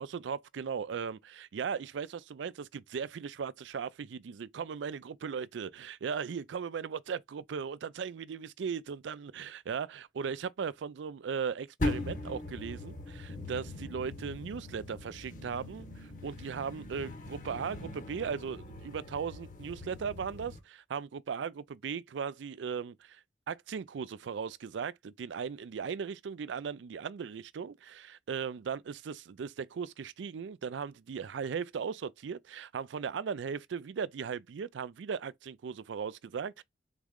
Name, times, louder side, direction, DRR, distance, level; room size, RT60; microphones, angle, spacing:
voice 1, 0.0-23.2 23.5-36.6, right 6 dB, 80° right, 0.4 m, -37 dB
sound 1, 11.8-20.6, left 2 dB, 45° left, 1.0 m, -40 dB
4.0 x 3.7 x 3.5 m
head